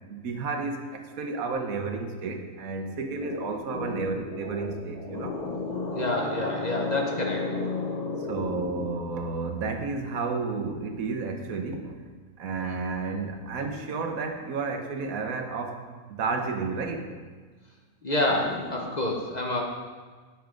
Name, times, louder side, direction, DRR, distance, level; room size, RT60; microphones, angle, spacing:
voice 1, 0.1-5.4 8.3-12.0 12.4-17.1, right 4 dB, 90° right, 5 dB, 1.3 m, -31 dB
voice 2, 2.9-3.4 3.7-4.8 5.1-8.7 18.0-19.6, left 2 dB, 35° left, 0 dB, 0.8 m, -29 dB
10.5 x 6.1 x 3.8 m, 1.5 s
omnidirectional pair, 1.4 m